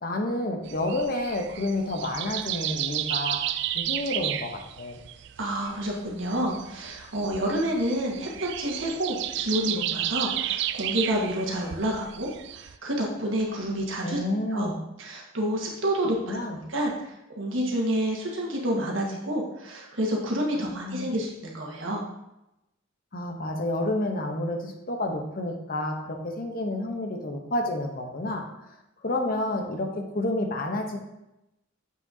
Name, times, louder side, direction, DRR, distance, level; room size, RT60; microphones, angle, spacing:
voice 1, 0.0-3.4 3.7-5.0 14.0-14.8 16.3-16.6 20.5-21.1 23.1-28.4 29.0-29.9 30.1-31.0, left 1 dB, 45° left, 3 dB, 0.9 m, -29 dB
sound 1, 0.7-12.7, right 12 dB, 60° right, 0.3 m, -32 dB
voice 2, 5.4-12.3 12.5-14.2 14.5-14.7 15.0-16.4 16.7-16.9 17.3-22.0, right 1 dB, 75° right, -2 dB, 1.5 m, -29 dB
7.4 x 6.0 x 2.8 m, 0.90 s
head